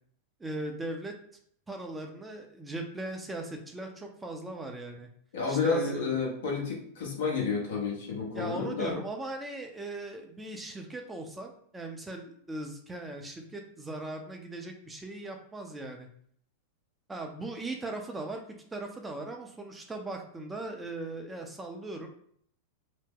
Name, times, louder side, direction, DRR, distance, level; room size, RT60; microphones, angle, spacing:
voice 1, 0.4-1.1 1.7-5.1 5.5-6.2 8.3-16.1 17.1-18.4 18.7-22.1, right 2 dB, 10° right, 3 dB, 0.5 m, -38 dB
voice 2, 5.3-9.0, left 5 dB, 75° left, -1 dB, 1.2 m, -30 dB
2.8 x 2.1 x 3.7 m, 0.64 s
hypercardioid pair, 105°, 0 cm